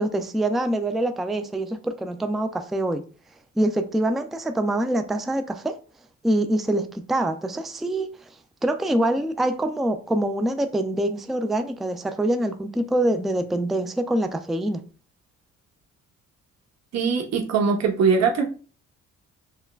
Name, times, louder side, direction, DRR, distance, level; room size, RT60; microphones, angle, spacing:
voice 1, 0.0-3.0 3.6-5.8 6.2-8.1 8.6-14.8, right 1 dB, ahead, 0.3 m, -25 dB
voice 2, 16.9-18.4, right 5 dB, 60° right, 0.8 m, -21 dB
5.5 x 2.2 x 2.3 m
cardioid pair, 90°, 30 cm